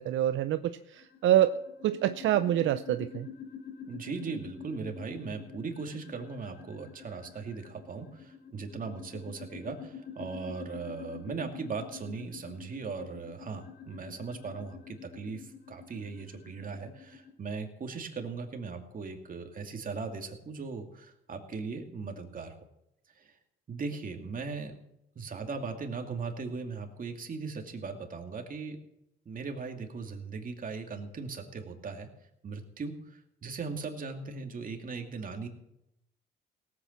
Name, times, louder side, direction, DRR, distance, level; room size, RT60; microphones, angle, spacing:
voice 1, 0.0-1.6 1.8-3.3, right 12 dB, 75° right, 11 dB, 0.6 m, -26 dB
sound 1, 0.9-17.3, left 7 dB, 55° left, 3.3 m, -47 dB
voice 2, 3.9-22.5 23.1-23.4 23.7-24.7 25.2-28.8 29.3-32.1 32.4-35.5, right 4 dB, 45° right, 4 dB, 2.6 m, -38 dB
17.5 x 8.6 x 7.3 m, 0.83 s
cardioid pair, 90°, 20 cm